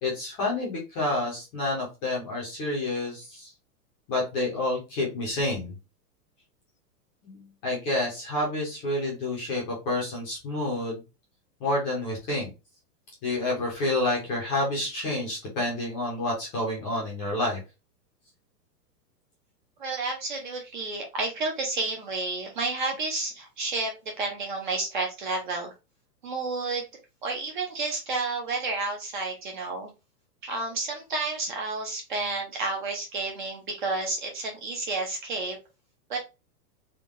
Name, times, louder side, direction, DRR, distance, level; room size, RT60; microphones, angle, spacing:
voice 1, 0.0-3.5 4.1-5.7 7.2-11.0 11.6-12.5 13.2-17.6, left 2 dB, 10° left, -3 dB, 0.7 m, -29 dB
voice 2, 19.8-23.9 24.2-25.7 26.2-26.9 27.2-29.9 30.4-35.6 36.1-36.2, right 3 dB, 30° right, 2 dB, 0.6 m, -31 dB
3.7 x 2.3 x 3.5 m, 0.27 s
hypercardioid pair, 170°, 48 cm